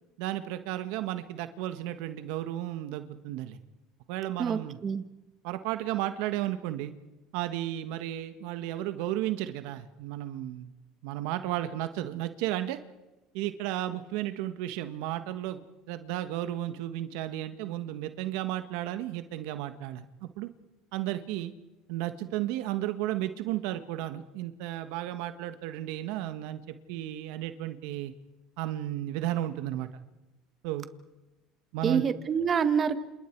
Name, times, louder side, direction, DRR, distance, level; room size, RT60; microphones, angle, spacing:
voice 1, 0.2-3.6 4.1-4.8 5.4-6.9 7.3-10.7 11.0-12.8 13.3-20.5 20.9-21.5 21.9-28.1 28.6-29.9 30.6-30.9 31.7-32.0, right 13 dB, 75° right, 10 dB, 1.5 m, -33 dB
voice 2, 4.4-5.0 31.8-33.0, right 7 dB, 35° right, 10 dB, 1.7 m, -26 dB
29.5 x 27.5 x 4.7 m, 1.1 s
supercardioid pair, 110°, 0 cm